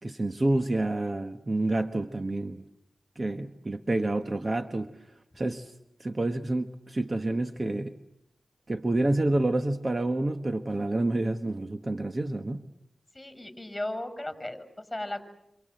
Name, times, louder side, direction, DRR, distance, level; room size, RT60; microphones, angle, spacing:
voice 1, 0.0-2.6 3.2-4.9 5.4-5.7 6.0-7.9 8.7-12.7, right 2 dB, 35° right, 9 dB, 1.3 m, -28 dB
voice 2, 13.1-15.2, left 1 dB, 15° left, 10 dB, 6.4 m, -36 dB
28.0 x 27.0 x 7.8 m, 0.78 s
cardioid pair, 50°, 0 cm